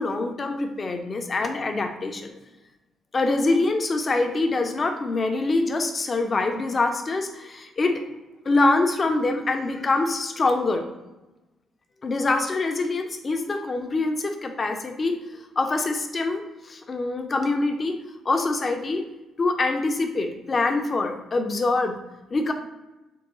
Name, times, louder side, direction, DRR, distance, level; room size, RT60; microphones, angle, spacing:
voice 1, 0.0-2.3 3.1-8.0 8.4-10.8 12.0-18.0 18.2-19.0 19.4-21.9 22.3-22.5, left 3 dB, 35° left, 5 dB, 0.5 m, -24 dB
4.4 x 2.2 x 3.0 m, 1.1 s
cardioid pair, 90°, 0 cm